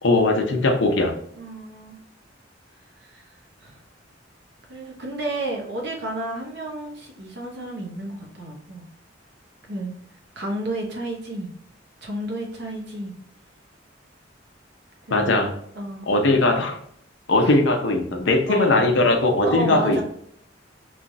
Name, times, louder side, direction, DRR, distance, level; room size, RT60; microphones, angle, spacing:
voice 1, 0.0-1.2 15.1-15.5 16.1-16.8 17.3-20.0, left 2 dB, 70° left, 3 dB, 0.7 m, -19 dB
voice 2, 1.3-2.0 3.0-3.3 3.6-3.8 4.7-8.9 9.7-9.9 10.4-11.5 12.0-13.1 15.1-15.5 15.7-16.1 17.4-17.5 18.5-18.9 19.4-20.0, right 1 dB, 60° right, 0 dB, 0.9 m, -31 dB
3.2 x 3.0 x 2.6 m, 0.68 s
head